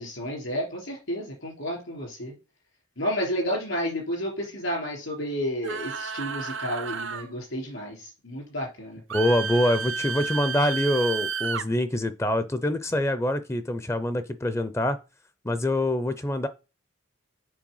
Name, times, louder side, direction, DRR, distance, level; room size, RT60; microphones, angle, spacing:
voice 1, 0.0-2.3 3.0-9.0, equal, 75° left, 3.9 m, -31 dB
sound 1, 5.6-7.3 9.1-11.6, right 6 dB, 65° right, 0.6 m, -31 dB
voice 2, 9.1-15.0 15.4-16.5, left 1 dB, 15° left, 0.5 m, -25 dB
7.5 x 4.4 x 5.5 m
head